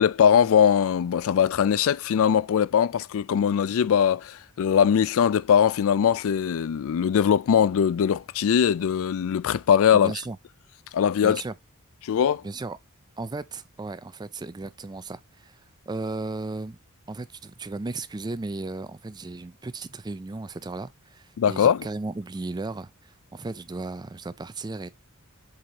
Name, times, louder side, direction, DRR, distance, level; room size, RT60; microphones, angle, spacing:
voice 1, 0.0-10.1 10.9-11.4 12.0-12.4 21.4-21.9, left 8 dB, 65° left, 0.4 m, -21 dB
voice 2, 9.9-10.4 11.2-11.5 12.4-12.8 13.2-15.6 15.9-16.8 17.1-24.9, right 3 dB, 20° right, 0.4 m, -35 dB
7.8 x 4.2 x 2.9 m
head